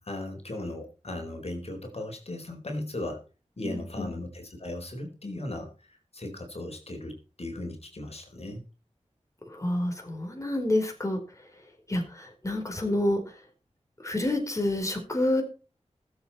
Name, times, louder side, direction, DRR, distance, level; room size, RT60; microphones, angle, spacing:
voice 1, 0.0-3.2 3.6-8.6, left 1 dB, 55° left, 4 dB, 4.6 m, -37 dB
voice 2, 3.6-4.1 9.5-11.2 11.9-13.4 14.0-15.4, left 1 dB, 25° left, 3 dB, 4.3 m, -28 dB
20.5 x 8.1 x 4.3 m, 0.34 s
wide cardioid pair, 65°, 12 cm